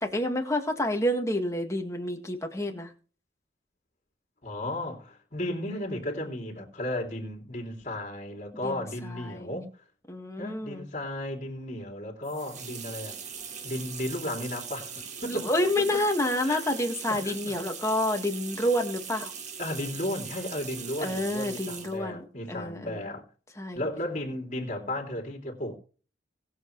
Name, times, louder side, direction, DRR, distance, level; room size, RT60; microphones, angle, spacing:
voice 1, 0.0-2.9 8.6-9.6 10.1-10.8 15.3-19.3 21.0-23.0 23.6-23.9, left 1 dB, 15° left, 1.8 m, -29 dB
voice 2, 4.4-9.7 10.4-13.2 13.6-15.4 16.4-16.6 17.1-17.7 19.6-23.2 23.7-25.8, left 1 dB, 45° left, 3.1 m, -34 dB
sound 1, 12.2-22.0, right 7 dB, 40° right, 1.9 m, -40 dB
20.0 x 7.3 x 3.3 m
head